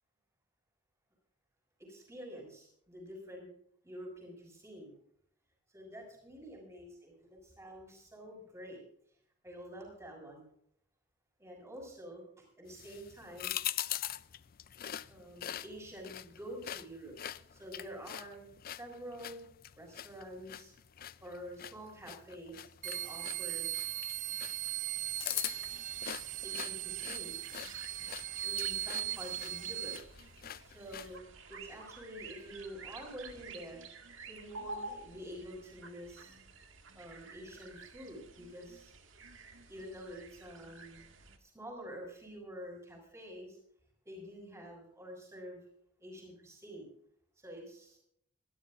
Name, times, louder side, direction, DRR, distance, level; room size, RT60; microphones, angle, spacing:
voice 1, 1.8-3.5 3.8-4.9 5.7-8.8 9.4-10.5 11.4-13.5 15.1-17.1 17.5-19.4 19.8-20.7 21.2-23.7 26.4-27.4 28.4-30.0 30.6-31.2 31.5-33.8 34.2-36.3 36.9-38.9 39.7-41.1 41.4-43.6 44.0-45.6 46.0-46.9 47.4-48.0, equal, 15° right, 0 dB, 6.2 m, -48 dB
sound 1, 12.7-31.2, left 12 dB, 45° left, 0.5 m, -44 dB
sound 2, 22.8-30.0, right 14 dB, 40° right, 0.4 m, -38 dB
sound 3, 25.4-41.4, right 3 dB, 75° right, 1.9 m, -51 dB
26.0 x 13.0 x 2.5 m, 0.69 s
head